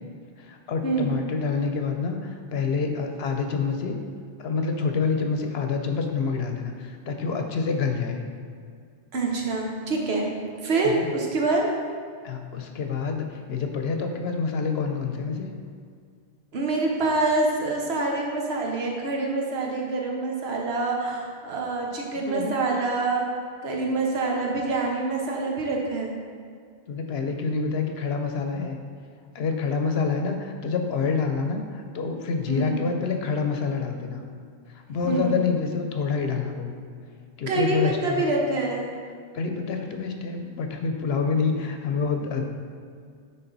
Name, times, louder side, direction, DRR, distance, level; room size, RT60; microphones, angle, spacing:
voice 1, 0.4-4.0 4.4-8.2 10.8-11.1 12.2-15.5 22.3-22.5 26.9-28.8 29.3-34.2 34.7-36.7 37.4-38.3 39.3-42.4, left 5 dB, 70° left, 4 dB, 0.9 m, -27 dB
voice 2, 9.1-10.3 10.6-11.7 16.5-23.2 23.6-26.1 32.5-32.8 35.0-35.4 37.5-38.9, right 3 dB, 70° right, -1 dB, 1.3 m, -26 dB
9.9 x 3.8 x 4.0 m, 2.1 s
omnidirectional pair, 1.1 m